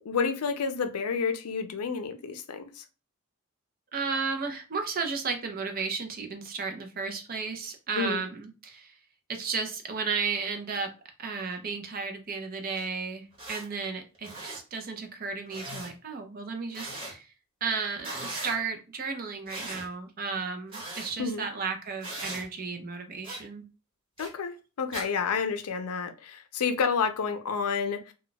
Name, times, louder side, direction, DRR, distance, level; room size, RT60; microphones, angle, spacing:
voice 1, 0.1-2.8 8.0-8.2 21.2-21.4 24.2-28.1, left 5 dB, 85° left, 0.5 m, -30 dB
voice 2, 3.9-9.0 9.3-10.9 11.2-17.3 17.6-23.6, right 5 dB, 40° right, 0.5 m, -34 dB
sound 1, 12.7-12.8 13.3-13.6 14.1-14.6 15.5-15.9 16.7-17.1 18.0-18.6 19.5-19.9 20.7-21.1 22.0-22.4 23.2-23.4 24.2-24.3 24.9-25.1, right 2 dB, 25° right, 1.0 m, -38 dB
2.2 x 2.2 x 3.8 m
head